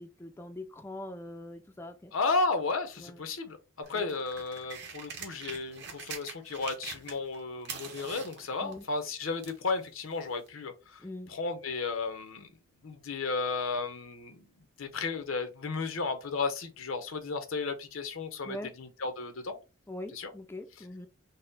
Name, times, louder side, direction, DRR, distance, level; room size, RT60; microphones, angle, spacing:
voice 1, 0.0-2.1 3.0-3.2 3.9-4.1 8.6-8.8 11.0-11.3 18.4-18.7 19.9-21.1, left 1 dB, 10° left, 0.4 m, -42 dB
voice 2, 2.1-3.6 3.9-11.0 11.3-12.5 12.8-14.5 14.8-19.6 20.1-20.3, left 4 dB, 80° left, 0.8 m, -33 dB
sound 1, 3.8-7.4 7.6-9.7 10.5-10.6, right 6 dB, 55° right, 1.0 m, -43 dB
4.1 x 2.1 x 3.8 m
head